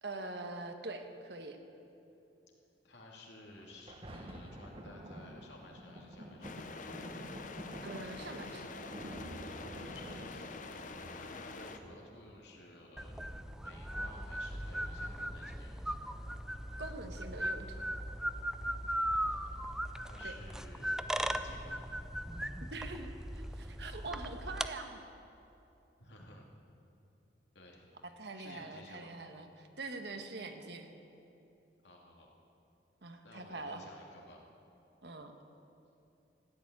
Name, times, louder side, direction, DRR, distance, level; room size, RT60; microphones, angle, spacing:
voice 1, 0.0-1.6 7.8-8.7 16.8-17.9 20.2-20.3 22.7-25.0 28.0-30.9 33.0-33.8 35.0-35.3, right 3 dB, 70° right, 6 dB, 1.3 m, -44 dB
voice 2, 2.8-6.6 9.4-15.8 18.9-21.8 26.0-26.5 27.5-27.9 28.3-29.1 31.8-32.3 33.2-34.4, left 1 dB, 75° left, -1 dB, 2.6 m, -55 dB
Thunder, 3.5-14.5 15.2-15.3, equal, 30° right, 1.3 m, -49 dB
sound 1, 6.4-11.8, left 3 dB, 45° left, 0.9 m, -46 dB
sound 2, 13.0-24.7, equal, 5° right, 0.4 m, -38 dB
14.5 x 9.2 x 9.5 m, 2.8 s
head